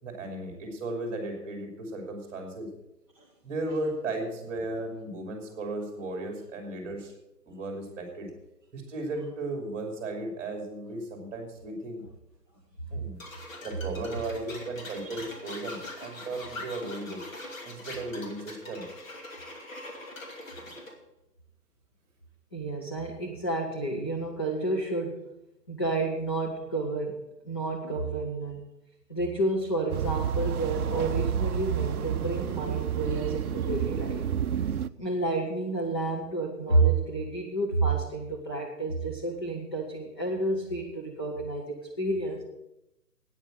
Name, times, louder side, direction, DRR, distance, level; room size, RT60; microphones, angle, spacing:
voice 1, 0.0-2.7 3.4-7.1 7.5-8.3 8.7-12.0 12.9-13.2 13.6-17.2 17.6-18.9, right 2 dB, 15° right, 3 dB, 2.8 m, -35 dB
sound 1, 13.2-20.9, left 2 dB, 55° left, 3.0 m, -42 dB
voice 2, 22.5-25.2 25.7-27.2 27.4-28.6 29.1-34.2 35.0-42.4, right 2 dB, 15° left, -2 dB, 0.6 m, -30 dB
sound 2, 29.9-34.9, right 8 dB, 65° right, 0.6 m, -30 dB
9.3 x 9.0 x 7.8 m, 0.89 s
figure-of-eight pair, 150°, 48 cm